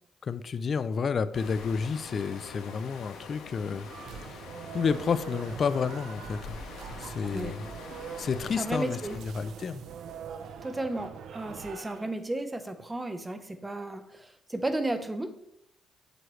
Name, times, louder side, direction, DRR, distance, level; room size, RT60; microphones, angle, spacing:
voice 1, 0.2-3.9 4.7-6.4 7.0-7.6 8.2-9.8, left 6 dB, 50° left, 14 dB, 0.5 m, -30 dB
sound 1, 1.3-9.2, left 4 dB, 90° left, 1.5 m, -45 dB
sound 2, 3.9-12.2, right 7 dB, 75° right, 0.6 m, -43 dB
voice 2, 8.6-9.2 10.6-15.3, right 2 dB, 15° right, 9 dB, 0.9 m, -33 dB
7.8 x 7.7 x 3.2 m, 0.77 s
cardioid pair, 90°, 0 cm